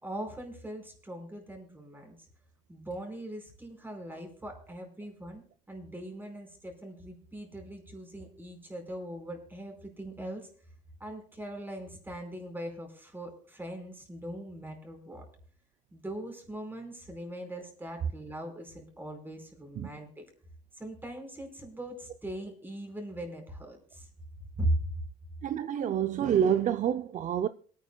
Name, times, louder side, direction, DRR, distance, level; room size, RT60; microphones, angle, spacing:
voice 1, 0.0-2.2 2.7-5.4 5.7-10.5 11.0-15.3 15.9-20.2 20.7-24.1 24.5-25.0, right 1 dB, 10° right, 4.6 m, -39 dB
voice 2, 25.4-27.5, right 9 dB, 50° right, 0.5 m, -27 dB
27.5 x 9.5 x 2.3 m
cardioid pair, 110°, 17 cm